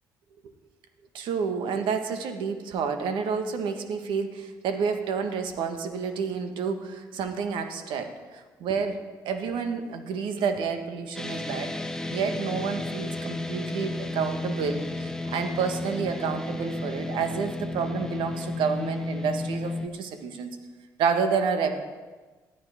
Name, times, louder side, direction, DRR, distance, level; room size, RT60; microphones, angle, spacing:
voice 1, 1.1-8.1 8.6-11.7 12.1-20.5 21.0-21.7, right 6 dB, 75° right, 6 dB, 1.6 m, -29 dB
sound 1, 11.1-19.9, left 2 dB, 5° left, 1.3 m, -33 dB
19.5 x 12.0 x 3.7 m, 1.3 s
supercardioid pair, 55°, 8 cm